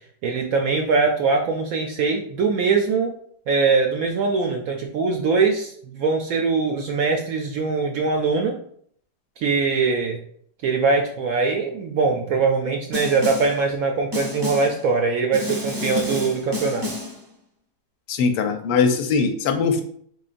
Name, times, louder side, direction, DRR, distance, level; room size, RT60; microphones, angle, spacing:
voice 1, 0.2-3.1 3.5-8.6 9.4-10.2 10.6-16.9, right 4 dB, 70° right, 2 dB, 0.8 m, -22 dB
Snare drum, 12.9-13.6 14.1-14.8 15.3-17.2, left 2 dB, 25° right, 0.5 m, -29 dB
voice 2, 18.1-19.8, left 5 dB, 75° left, 7 dB, 1.2 m, -21 dB
3.8 x 3.7 x 2.5 m, 0.62 s
omnidirectional pair, 1.9 m